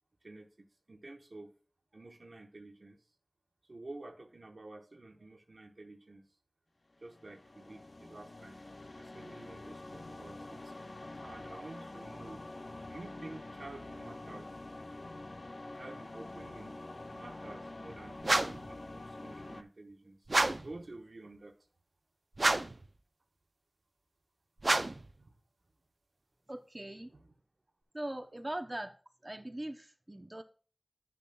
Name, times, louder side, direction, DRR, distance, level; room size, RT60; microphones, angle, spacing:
voice 1, 0.2-1.5 1.9-3.0 3.7-6.3 7.0-8.6 9.0-10.7 11.2-12.5 12.8-14.5 15.7-16.8 17.1-20.2 20.6-21.6 25.2-25.3 27.1-27.3, right 2 dB, 85° right, 4 dB, 1.0 m, -50 dB
sound 1, 7.0-19.6, left 2 dB, 70° left, 0.4 m, -46 dB
sound 2, 18.2-18.7 20.3-20.7 22.4-22.9 24.6-25.1, right 2 dB, 70° right, 0.5 m, -29 dB
voice 2, 26.5-27.1 27.9-28.9 29.2-30.4, right 1 dB, 35° right, 6 dB, 0.7 m, -41 dB
10.0 x 6.9 x 2.3 m, 0.40 s
wide cardioid pair, 55°, 0 cm